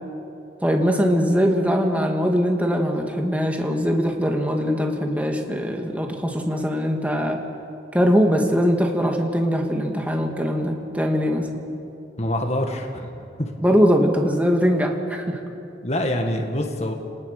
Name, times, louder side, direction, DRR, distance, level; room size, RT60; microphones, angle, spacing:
voice 1, 0.6-7.4 7.9-11.5 13.6-15.4, equal, 10° right, 2 dB, 2.2 m, -21 dB
voice 2, 12.2-13.1 13.4-13.5 15.8-16.9, left 1 dB, 35° left, 3 dB, 1.9 m, -25 dB
29.5 x 19.5 x 6.8 m, 2.7 s
head